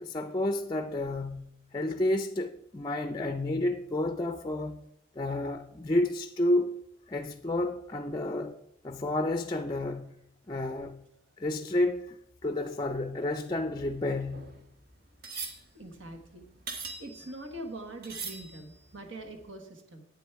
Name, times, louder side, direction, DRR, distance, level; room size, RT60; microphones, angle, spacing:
voice 1, 0.0-4.8 5.2-6.7 7.1-8.6 8.8-10.1 10.5-11.0 11.4-12.2 12.4-14.5, left 1 dB, 20° left, 0.4 m, -30 dB
sound 1, 13.8-17.7 18.0-19.0 19.4-19.5, right 4 dB, 50° right, 1.5 m, -42 dB
voice 2, 15.7-16.6 17.0-20.1, right 1 dB, 70° right, 1.5 m, -43 dB
11.0 x 8.7 x 4.7 m
head